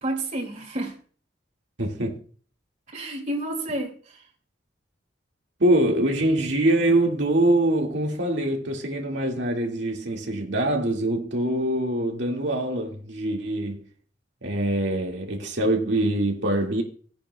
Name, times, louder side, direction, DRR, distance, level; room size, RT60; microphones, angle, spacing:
voice 1, 0.0-1.0 2.9-4.2, right 1 dB, 45° right, 2.3 m, -30 dB
voice 2, 1.8-2.2 5.6-13.8 14.4-16.8, right 1 dB, 75° right, 1.9 m, -24 dB
16.5 x 10.0 x 2.2 m
head